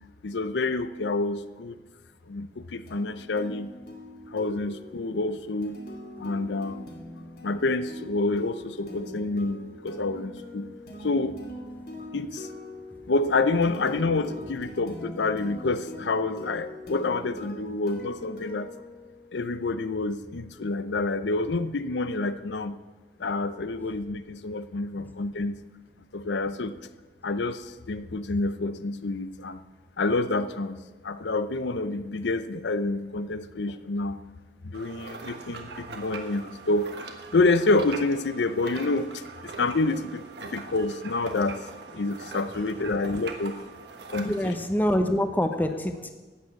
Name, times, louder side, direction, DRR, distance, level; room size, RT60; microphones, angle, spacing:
voice 1, 0.2-1.8 2.3-3.7 4.3-5.8 6.2-6.9 7.4-10.7 11.0-11.4 12.1-12.5 13.1-18.7 19.3-22.7 23.2-25.6 26.1-26.7 27.2-29.6 30.0-30.8 31.0-34.2 34.6-36.9 37.3-41.6 41.9-43.5 44.1-44.5, left 3 dB, 90° left, 12 dB, 0.6 m, -28 dB
sound 1, 2.9-19.6, left 1 dB, 55° left, 2.5 m, -43 dB
sound 2, 34.7-44.6, right 4 dB, 75° right, 1.4 m, -41 dB
voice 2, 44.2-46.1, left 1 dB, 10° left, 6 dB, 0.9 m, -26 dB
12.5 x 9.0 x 7.0 m, 1.3 s
head